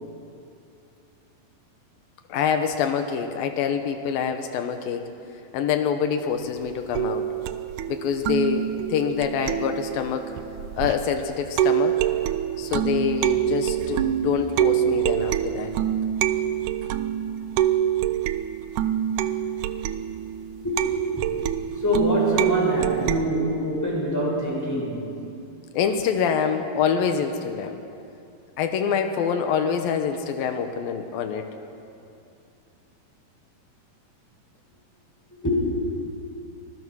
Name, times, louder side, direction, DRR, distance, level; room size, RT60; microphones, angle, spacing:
voice 1, 2.3-5.1 5.5-7.3 7.9-10.3 10.8-12.0 12.6-15.7 25.7-27.8 28.6-31.5, left 7 dB, 85° left, 6 dB, 2.9 m, -25 dB
sound 1, 7.0-11.2 11.6-23.2, right 11 dB, 75° right, 2.0 m, -25 dB
voice 2, 20.6-21.4 21.8-25.1 35.4-35.8, equal, 5° left, -4 dB, 6.5 m, -25 dB
25.0 x 22.0 x 6.3 m, 2.6 s
omnidirectional pair, 4.1 m